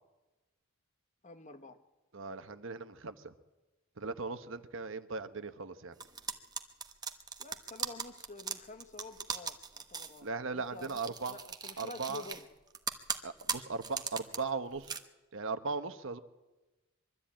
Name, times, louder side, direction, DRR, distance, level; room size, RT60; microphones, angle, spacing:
voice 1, 1.2-1.8 7.4-12.5, left 3 dB, 35° left, 7 dB, 1.4 m, -49 dB
voice 2, 2.1-3.3 4.0-5.9 10.2-11.4 11.8-12.2 13.2-14.9 15.3-16.2, right 4 dB, 65° right, 10 dB, 1.1 m, -38 dB
Celery-Chomp, 6.0-10.2 10.8-12.4 12.7-14.4 14.7-15.0, right 5 dB, 20° right, 1.1 m, -38 dB
23.0 x 13.0 x 8.7 m, 1.1 s
head